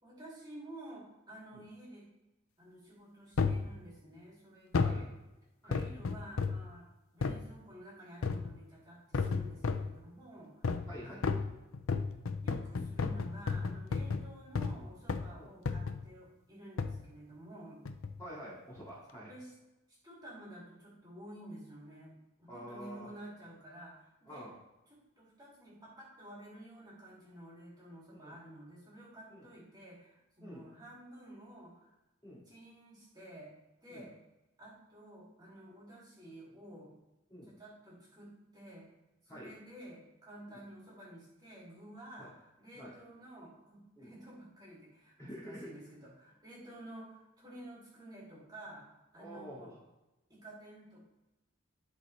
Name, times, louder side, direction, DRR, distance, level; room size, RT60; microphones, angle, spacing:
voice 1, 0.0-2.0 2.6-5.1 5.6-6.9 7.1-11.5 12.4-17.8 19.2-19.5 19.9-22.1 22.4-24.5 24.9-31.9 32.5-33.5 33.8-34.2 34.6-36.9 37.5-38.3 38.5-38.9 39.2-49.7 50.3-51.0, right 1 dB, 20° right, -6 dB, 2.5 m, -51 dB
sound 1, 3.4-3.7 4.7-5.0 5.7-6.7 7.2-7.4 8.2-8.6 9.1-9.9 10.6-10.9 11.2-14.8 15.1-15.3 15.7-16.0 16.8-17.0 17.8-18.2 18.8-18.9, left 4 dB, 85° left, 0.5 m, -33 dB
voice 2, 10.9-11.2 15.4-15.5 18.2-19.3 22.5-23.1 24.3-24.5 28.1-28.4 29.3-29.5 30.4-30.7 32.2-32.4 33.9-34.1 37.3-37.5 39.3-39.5 40.5-40.7 42.2-42.3 42.7-42.9 44.0-44.1 45.2-45.7 49.1-49.8, equal, 15° left, -8 dB, 2.1 m, -48 dB
11.5 x 4.2 x 3.2 m, 1.0 s
head